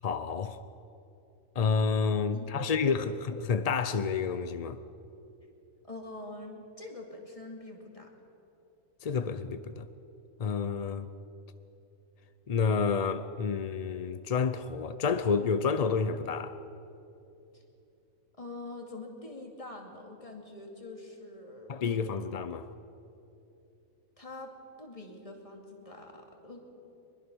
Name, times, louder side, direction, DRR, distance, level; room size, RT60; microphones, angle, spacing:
voice 1, 0.0-0.6 1.6-4.8 9.0-9.9 10.4-11.1 12.5-16.6 21.7-22.7, left 5 dB, 55° left, 0.4 m, -29 dB
voice 2, 2.3-3.2 5.8-8.1 17.5-17.6 18.4-22.2 24.2-26.6, left 2 dB, 25° left, 2.6 m, -45 dB
23.5 x 21.0 x 6.3 m
omnidirectional pair, 1.4 m